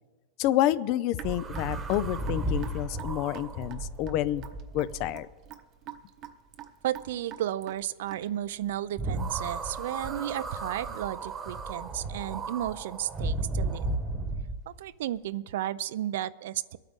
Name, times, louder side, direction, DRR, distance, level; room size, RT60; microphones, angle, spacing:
voice 1, 0.4-4.4 4.7-5.3, left 13 dB, 40° left, 18 dB, 0.4 m, -28 dB
Raindrop / Drip, 1.1-8.5, right 11 dB, 35° right, 0.9 m, -46 dB
sound 1, 1.2-5.5 9.0-14.6, right 2 dB, 20° right, 1.1 m, -34 dB
voice 2, 6.8-13.9 14.7-16.8, right 12 dB, 70° right, 17 dB, 0.5 m, -33 dB
23.0 x 9.0 x 3.7 m, 1.4 s
supercardioid pair, 155°, 0 cm